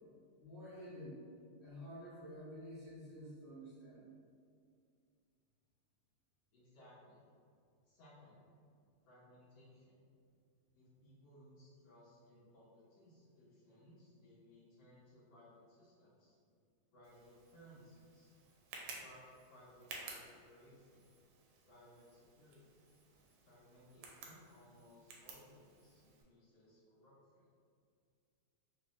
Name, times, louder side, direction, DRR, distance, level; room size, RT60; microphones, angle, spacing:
voice 1, 0.4-1.2 1.6-4.0, equal, 60° left, -12 dB, 0.5 m, -50 dB
voice 2, 6.5-7.3 7.8-8.4 9.0-10.0 10.7-16.4 16.9-18.3 19.0-19.2 19.5-21.1 21.7-22.8 23.4-27.5, equal, 85° left, -11 dB, 2.2 m, -62 dB
Tick, 17.0-26.2, right 3 dB, 85° right, 1.5 m, -55 dB
5.4 x 2.1 x 2.3 m, 2.3 s
omnidirectional pair, 2.4 m